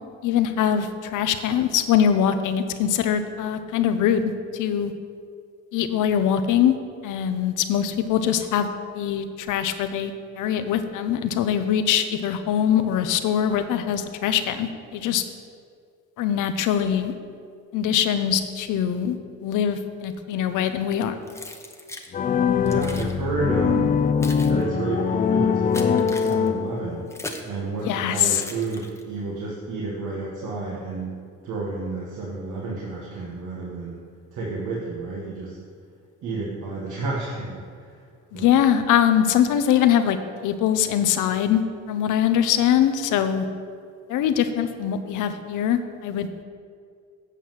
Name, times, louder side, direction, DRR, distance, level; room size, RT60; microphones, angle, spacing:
voice 1, 0.2-4.9 5.7-6.7 7.0-8.7 8.9-15.2 16.2-17.1 17.7-21.2 27.8-28.4 38.3-41.6 41.9-43.4 44.1-46.4, left 9 dB, 85° left, 9 dB, 0.8 m, -22 dB
Keys jangling, 21.3-22.1 22.7-23.1 23.9-27.6 28.3-29.2, left 1 dB, 10° left, 1.0 m, -39 dB
sound 1, 22.1-27.1, left 7 dB, 30° left, 0.4 m, -22 dB
voice 2, 22.6-24.0 24.5-27.1 27.4-31.1 31.4-34.0 34.3-35.6 36.2-38.1 38.3-38.6, right 3 dB, 75° right, -4 dB, 1.5 m, -30 dB
8.4 x 5.5 x 7.5 m, 2.2 s
cardioid pair, 90°, 30 cm